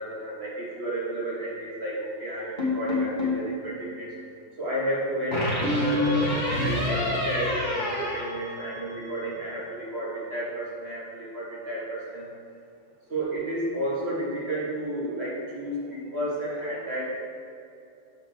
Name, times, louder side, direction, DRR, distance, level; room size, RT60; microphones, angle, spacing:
voice 1, 0.0-4.1 4.6-12.3 13.1-17.1, right 1 dB, 30° right, -7 dB, 2.0 m, -32 dB
sound 1, 2.6-3.5 5.3-9.1, left 2 dB, 20° left, 1.6 m, -27 dB
7.2 x 5.2 x 6.3 m, 2.6 s
omnidirectional pair, 2.4 m